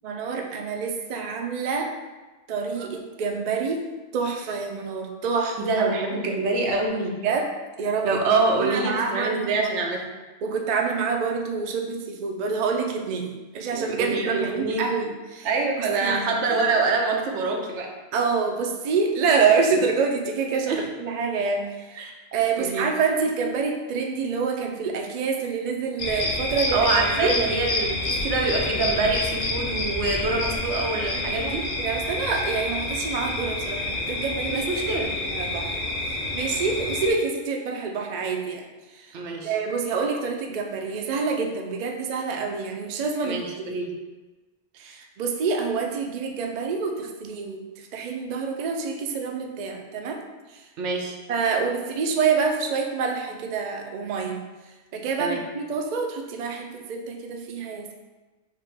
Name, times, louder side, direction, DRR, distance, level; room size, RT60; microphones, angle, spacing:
voice 1, 0.0-1.9 2.5-3.8 4.1-5.6 7.2-7.5 7.8-8.2 8.6-9.5 10.4-15.5 15.8-16.2 18.1-26.8 27.2-27.3 31.1-31.5 31.8-34.6 35.3-35.8 36.1-38.7 38.9-39.1 39.4-43.4 44.7-50.2 50.5-50.7 51.3-54.4 54.9-57.9, right 5 dB, 55° right, 2 dB, 0.5 m, -27 dB
voice 2, 5.6-7.2 8.0-10.1 13.7-14.9 15.4-17.9 20.7-20.9 21.9-22.1 22.6-22.9 26.7-31.7 34.5-35.1 39.1-39.5 43.2-44.0 50.8-51.1 55.2-55.4, right 3 dB, 90° right, 1 dB, 1.0 m, -25 dB
sound 1, 26.0-37.1, left 2 dB, 55° left, 0.8 m, -28 dB
4.9 x 2.5 x 3.2 m, 1.2 s
omnidirectional pair, 1.2 m